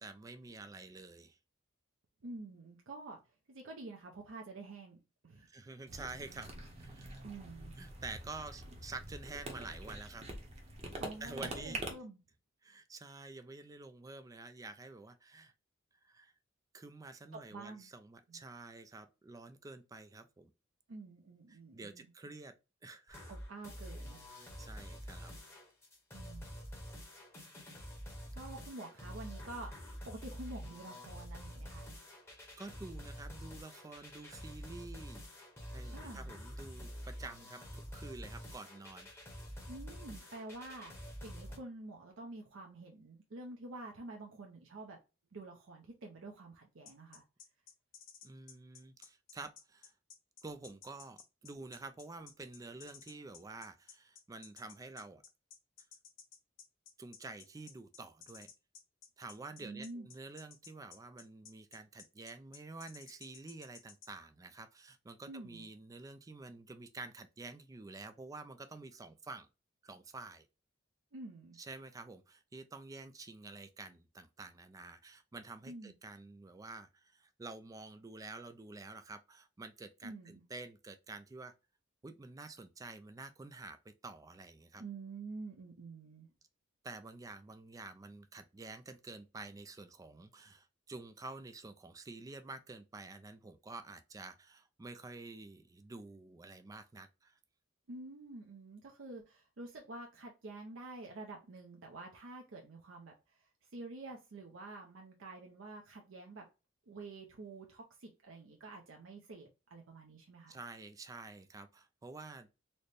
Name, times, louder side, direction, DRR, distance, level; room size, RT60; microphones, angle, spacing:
voice 1, 0.0-1.4 5.4-7.2 7.8-10.2 11.2-11.8 12.6-15.5 16.0-16.3 16.7-20.5 21.5-22.5 22.8-23.3 24.4-25.4 32.6-35.2 35.7-39.1 48.2-49.9 50.4-55.2 57.0-58.5 59.2-69.5 69.8-70.5 71.6-81.5 82.0-84.8 86.8-97.4 110.5-112.5, right 3 dB, 15° right, 0.3 m, -49 dB
voice 2, 2.2-3.2 3.5-5.0 5.2-5.5 7.2-7.8 11.0-12.2 17.3-17.9 18.3-18.4 20.9-22.1 23.3-24.2 26.1-26.6 28.3-31.9 35.9-36.3 39.7-45.0 45.3-47.2 59.6-60.1 65.3-65.7 71.1-71.6 75.7-75.9 80.0-80.4 84.8-86.3 97.9-106.5 106.9-110.6, right 2 dB, 70° right, 0.6 m, -48 dB
sound 1, 5.9-11.9, right 1 dB, 30° right, 0.7 m, -45 dB
sound 2, 23.1-41.6, equal, 15° left, 0.9 m, -48 dB
sound 3, 46.9-64.1, left 7 dB, 80° left, 1.0 m, -55 dB
4.1 x 2.1 x 3.2 m
head